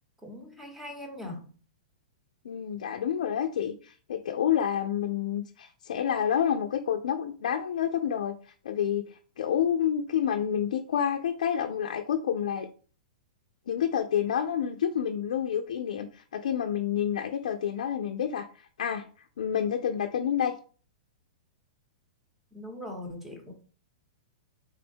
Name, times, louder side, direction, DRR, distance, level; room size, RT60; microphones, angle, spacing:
voice 1, 0.2-1.5 22.5-23.5, left 1 dB, 5° right, 2 dB, 0.9 m, -41 dB
voice 2, 2.4-8.4 8.6-12.7 13.7-19.1 19.4-20.5, left 9 dB, 80° left, 4 dB, 0.4 m, -29 dB
3.8 x 2.2 x 4.3 m, 0.41 s
hypercardioid pair, 150°, 4 cm